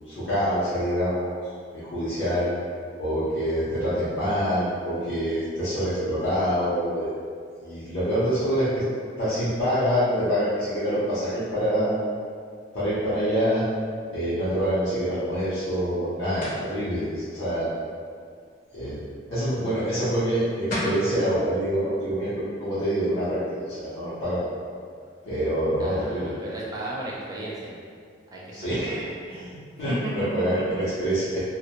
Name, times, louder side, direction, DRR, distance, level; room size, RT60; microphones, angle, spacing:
voice 1, 0.1-1.4 1.7-2.5 3.0-7.1 7.6-8.8 9.2-12.0 12.7-13.6 14.1-17.7 18.7-19.0 19.3-24.5 25.2-26.3 28.5-31.4, equal, 85° left, -13 dB, 0.6 m, -26 dB
sound 1, 16.4-16.7 20.4-20.5 20.7-21.1, left 1 dB, 45° left, 0.5 m, -29 dB
voice 2, 25.8-27.8 28.3-29.4 29.9-30.1 30.5-30.8, right 1 dB, 20° right, -5 dB, 0.4 m, -35 dB
2.1 x 2.1 x 2.8 m, 2.1 s
head